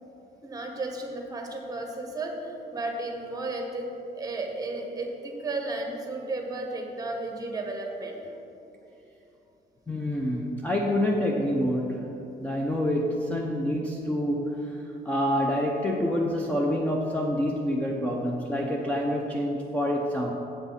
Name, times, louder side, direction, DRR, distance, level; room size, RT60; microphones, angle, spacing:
voice 1, 0.4-3.9 4.1-8.2, right 2 dB, 20° right, 2 dB, 1.3 m, -33 dB
voice 2, 9.9-20.3, equal, 10° left, -1 dB, 0.6 m, -27 dB
8.1 x 6.0 x 5.7 m, 2.9 s
cardioid pair, 130°, 18 cm